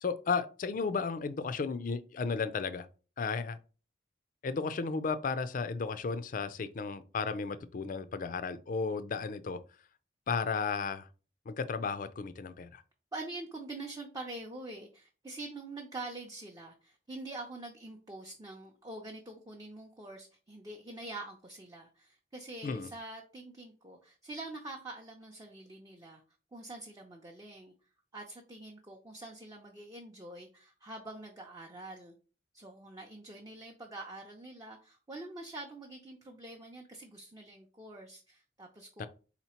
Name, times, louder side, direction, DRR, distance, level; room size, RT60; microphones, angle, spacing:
voice 1, 0.0-2.9 3.2-3.6 4.4-9.6 10.3-11.1 11.5-12.8 22.6-22.9 39.0-39.1, left 5 dB, 50° left, 0.4 m, -34 dB
voice 2, 13.1-26.2 26.5-27.7 28.1-32.1 32.5-39.1, right 2 dB, 20° right, 0.6 m, -45 dB
4.1 x 2.9 x 4.3 m
head